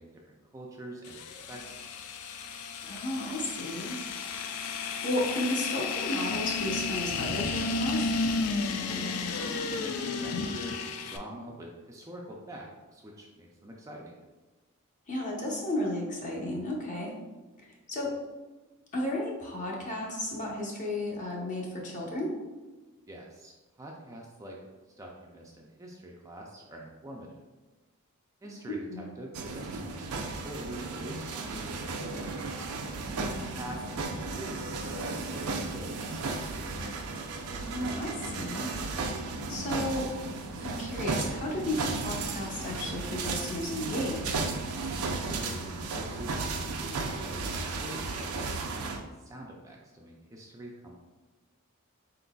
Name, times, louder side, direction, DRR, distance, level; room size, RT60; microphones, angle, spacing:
voice 1, 0.0-2.0 8.9-14.2 23.1-24.6 25.0-27.3 28.4-32.6 33.3-36.7 45.2-50.9, right 1 dB, 15° right, -1 dB, 0.4 m, -45 dB
sound 1, 1.0-11.2, left 4 dB, 85° left, 0.4 m, -33 dB
voice 2, 2.8-4.0 4.7-8.1 15.1-17.1 17.6-18.1 18.9-22.3 28.4-28.5 28.9-29.0 33.3-33.6 37.5-38.7 39.5-40.1 40.6-44.4, left 1 dB, 35° left, -2 dB, 0.8 m, -33 dB
sound 2, 29.3-49.0, right 3 dB, 80° right, 0.5 m, -34 dB
4.3 x 3.9 x 2.3 m, 1.2 s
head